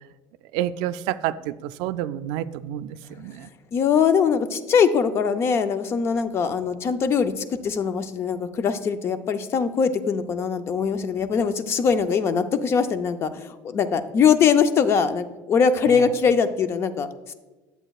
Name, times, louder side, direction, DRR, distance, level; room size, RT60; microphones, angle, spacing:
voice 1, 0.5-3.5, right 12 dB, 80° right, 14 dB, 0.4 m, -29 dB
voice 2, 3.7-17.3, left 6 dB, 35° left, 10 dB, 0.5 m, -22 dB
11.0 x 7.9 x 2.3 m, 1.2 s
cardioid pair, 150°, 8 cm